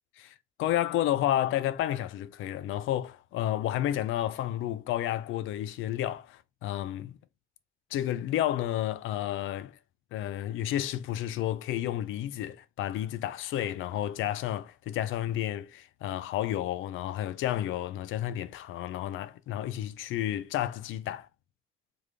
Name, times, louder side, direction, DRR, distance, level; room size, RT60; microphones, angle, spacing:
voice 1, 0.2-7.2 7.9-9.8 10.1-21.3, left 12 dB, 85° left, 0.5 m, -31 dB
3.5 x 3.3 x 3.6 m
cardioid pair, 90°, 20 cm